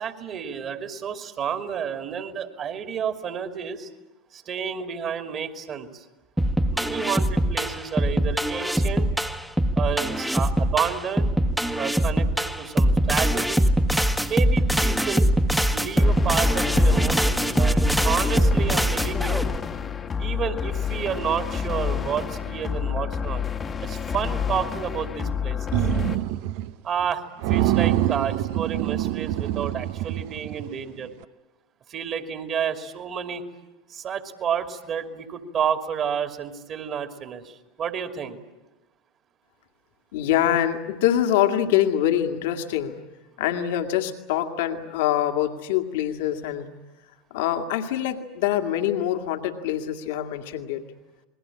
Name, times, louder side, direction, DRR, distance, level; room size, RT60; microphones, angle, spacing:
voice 1, 0.0-3.9 4.3-6.0 6.7-9.1 9.8-11.3 11.8-13.7 14.2-15.3 15.7-19.4 20.2-23.4 23.8-25.6 26.8-27.2 27.5-31.1 31.9-33.5 33.9-38.4, right 7 dB, 35° right, 6 dB, 2.7 m, -30 dB
sound 1, 6.4-19.6, equal, 5° right, 1.5 m, -22 dB
sound 2, 16.0-26.2, left 7 dB, 25° left, 1.5 m, -29 dB
sound 3, 25.7-26.7 27.0-27.1 27.4-30.8, right 13 dB, 55° right, 0.8 m, -25 dB
voice 2, 40.1-43.0 43.4-46.7 47.3-50.8, left 11 dB, 60° left, 6 dB, 2.1 m, -24 dB
28.5 x 21.5 x 8.7 m, 1.1 s
figure-of-eight pair, 80°, 0 cm